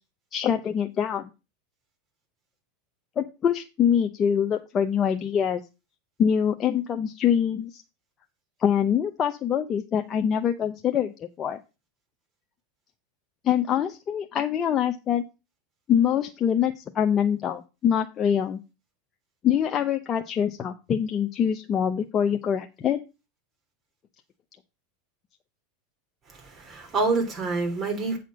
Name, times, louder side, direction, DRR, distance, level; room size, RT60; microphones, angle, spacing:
voice 1, 0.3-1.3 3.2-5.6 6.2-7.8 8.6-11.1 11.4-11.6 13.4-15.2 15.9-18.6 19.4-23.0, left 8 dB, 30° left, 0.7 m, -24 dB
voice 2, 26.3-28.2, right 3 dB, 30° right, 3.2 m, -27 dB
8.4 x 4.3 x 6.2 m
supercardioid pair, 120°, 0 cm